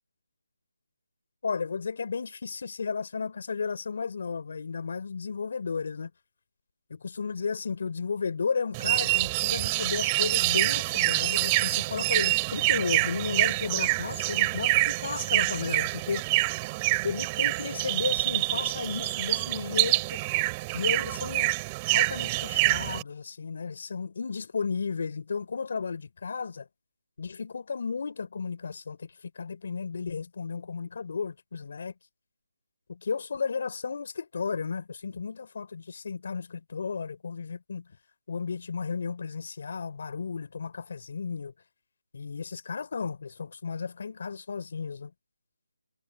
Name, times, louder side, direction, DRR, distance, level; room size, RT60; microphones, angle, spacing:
voice 1, 1.4-6.1 6.9-16.2 17.0-20.2 20.7-21.5 21.9-26.7 27.2-31.9 32.9-37.9 38.3-41.5 42.1-45.1, left 5 dB, 50° left, 4.2 m, -33 dB
sound 1, 8.7-23.0, right 24 dB, 20° right, 4.3 m, -26 dB
figure-of-eight pair, 165°, 0 cm